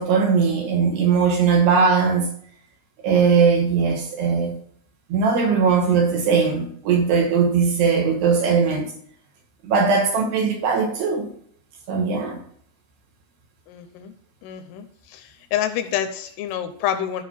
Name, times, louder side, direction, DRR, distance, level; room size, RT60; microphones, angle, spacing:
voice 1, 0.0-2.3 3.0-4.6 5.1-8.9 9.6-11.3 11.9-12.4, right 5 dB, 65° right, 3.1 m, -19 dB
voice 2, 13.7-14.1 14.4-14.9 15.1-17.2, left 10 dB, 80° left, 3.1 m, -27 dB
14.0 x 5.3 x 4.4 m
omnidirectional pair, 5.8 m